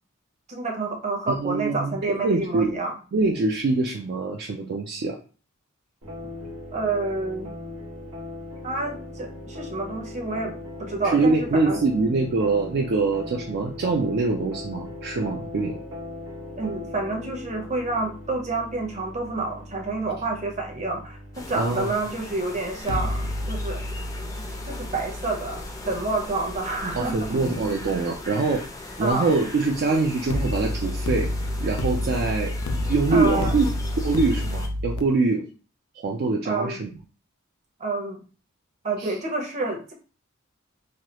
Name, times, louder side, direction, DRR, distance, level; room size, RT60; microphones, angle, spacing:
voice 1, 0.5-3.0 6.7-7.5 8.6-11.8 16.6-23.8 24.7-27.2 29.0-29.3 33.1-33.5 36.4-36.8 37.8-38.2 38.8-39.9, right 3 dB, 35° right, 1 dB, 0.7 m, -29 dB
voice 2, 1.3-2.8 3.1-5.2 11.0-15.8 21.6-21.9 27.0-28.6 29.0-31.3 31.6-32.5 32.9-33.7 34.0-35.4 35.9-36.9 39.0-39.2, right 3 dB, 50° right, 2 dB, 0.4 m, -24 dB
sound 1, 6.0-22.8, left 2 dB, 75° right, 1.0 m, -39 dB
sound 2, 21.3-34.7, left 2 dB, 15° left, 0.4 m, -38 dB
sound 3, 22.8-27.9 30.3-35.0, left 1 dB, 75° left, 0.4 m, -30 dB
3.1 x 2.3 x 2.9 m, 0.38 s
head